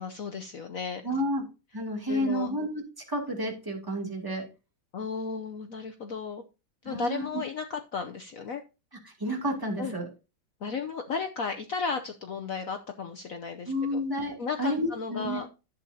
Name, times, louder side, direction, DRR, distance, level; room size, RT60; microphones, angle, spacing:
voice 1, 0.0-1.0 2.1-2.5 4.9-6.4 6.8-8.6 9.8-9.9 10.6-14.0 14.4-15.5, left 5 dB, 60° left, 6 dB, 0.9 m, -34 dB
voice 2, 1.0-1.4 1.7-2.7 3.1-4.4 6.8-7.3 9.2-10.1 13.7-15.4, equal, 10° right, 0 dB, 2.5 m, -30 dB
11.0 x 8.1 x 2.8 m, 0.30 s
omnidirectional pair, 2.2 m